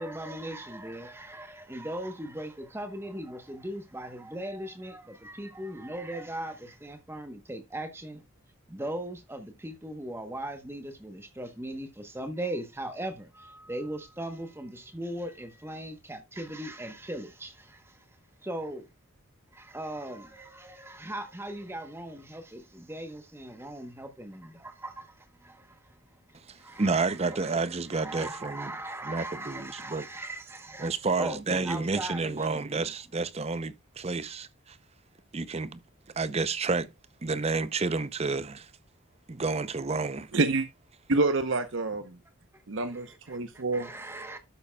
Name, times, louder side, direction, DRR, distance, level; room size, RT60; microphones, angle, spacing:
voice 1, 0.0-8.2 8.7-18.0 18.4-18.9 19.5-25.8 26.3-27.5 27.9-32.8 42.9-43.4 43.7-44.4, right 1 dB, 10° right, 1.1 m, -39 dB
voice 2, 26.5-28.7 29.0-30.1 30.8-34.8 35.3-35.8 36.1-36.9 37.2-38.7 39.3-40.3, right 3 dB, 30° right, 0.6 m, -30 dB
voice 3, 40.3-40.7 41.1-42.2 42.7-44.2, right 3 dB, 60° right, 0.9 m, -28 dB
12.5 x 6.9 x 2.3 m
head